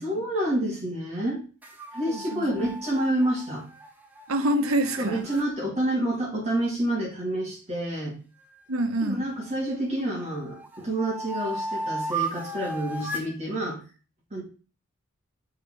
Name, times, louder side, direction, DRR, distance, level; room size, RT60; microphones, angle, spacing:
voice 1, 0.0-1.4 1.9-3.6 5.0-8.2 9.0-13.8 14.3-14.4, right 1 dB, 30° right, -3 dB, 2.6 m, -28 dB
sound 1, 1.6-5.5 8.4-9.7 10.2-13.4, right 2 dB, 10° right, 0.8 m, -36 dB
voice 2, 2.1-2.7 4.3-5.2 8.7-9.2, right 1 dB, 85° right, 8 dB, 1.0 m, -27 dB
7.4 x 4.2 x 4.8 m, 0.36 s
head